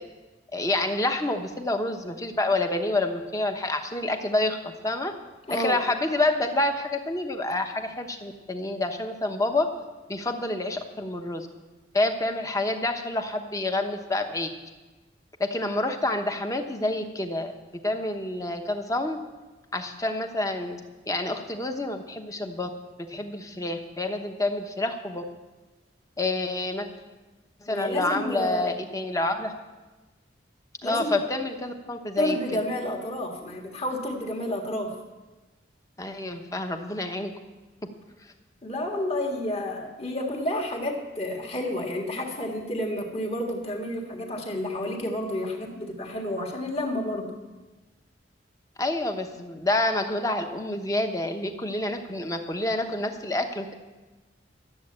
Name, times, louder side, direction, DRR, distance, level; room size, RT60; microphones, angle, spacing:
voice 1, 0.5-5.1 5.5-9.7 10.1-11.5 11.9-14.5 15.4-17.5 17.8-19.2 19.7-20.8 21.1-22.7 23.0-25.2 26.2-26.9 27.6-29.5 30.8-32.6 36.0-37.3 37.8-37.9 48.8-53.7, left 2 dB, 20° left, 5 dB, 1.0 m, -28 dB
voice 2, 5.5-5.8 27.7-28.7 30.8-31.2 32.2-35.0 38.6-47.4, left 1 dB, 35° left, 1 dB, 1.7 m, -30 dB
12.5 x 7.8 x 8.6 m, 1.2 s
head